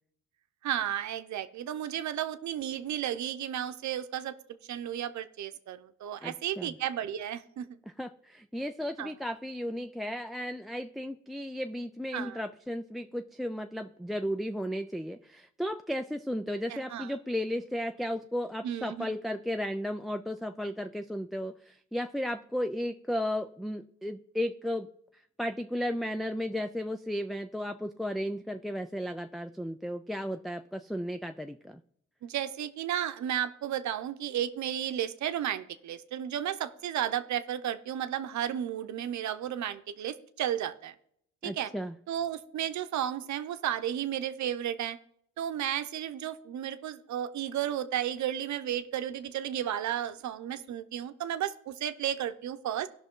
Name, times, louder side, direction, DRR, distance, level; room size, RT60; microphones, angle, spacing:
voice 1, 0.6-4.3 4.7-7.8 9.0-9.1 12.1-12.4 16.7-17.1 18.6-19.1 32.2-41.0 41.4-41.7 42.1-45.0 45.4-52.9, right 10 dB, 70° right, 10 dB, 0.9 m, -33 dB
voice 2, 6.2-6.7 8.0-24.9 25.4-31.8 41.4-41.9, equal, ahead, 8 dB, 0.4 m, -34 dB
16.5 x 6.0 x 3.8 m, 0.68 s
cardioid pair, 90°, 30 cm